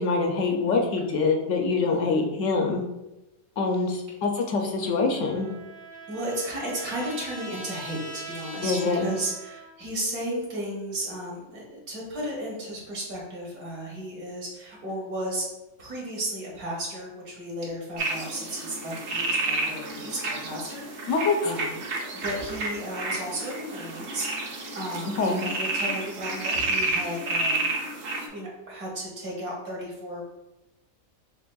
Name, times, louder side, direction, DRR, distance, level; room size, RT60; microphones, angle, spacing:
voice 1, 0.0-2.8 3.6-5.5 8.6-9.0 21.1-21.3 25.2-25.5, left 4 dB, 65° left, 2 dB, 0.9 m, -25 dB
voice 2, 1.9-2.2 6.1-15.5 15.8-21.9 22.1-27.7 28.3-30.2, right 1 dB, 75° right, -3 dB, 1.8 m, -34 dB
Trumpet, 4.8-9.9, right 2 dB, 35° right, 0.4 m, -42 dB
sound 1, 18.0-28.3, right 2 dB, 60° right, 0.9 m, -30 dB
6.0 x 3.1 x 2.3 m, 0.97 s
omnidirectional pair, 1.5 m